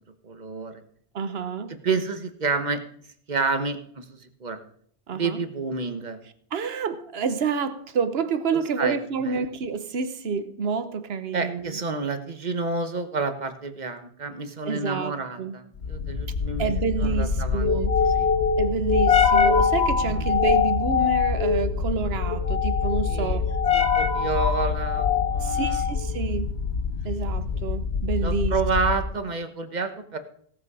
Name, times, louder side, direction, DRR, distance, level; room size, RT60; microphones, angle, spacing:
voice 1, 0.2-0.8 1.8-2.8 3.3-4.6 5.1-6.2 8.8-9.5 11.3-17.7 18.0-18.3 20.0-20.3 23.0-23.4 23.7-25.8 28.2-30.2, right 4 dB, 45° right, 1.2 m, -29 dB
voice 2, 1.1-1.8 5.1-5.4 6.5-11.8 14.7-15.1 15.4-15.5 16.6-18.0 18.6-23.5 25.4-26.5 27.0-28.6, right 5 dB, 75° right, 1.2 m, -28 dB
sound 1, 15.8-29.2, left 6 dB, 90° left, 1.4 m, -24 dB
17.0 x 7.4 x 4.9 m
omnidirectional pair, 1.1 m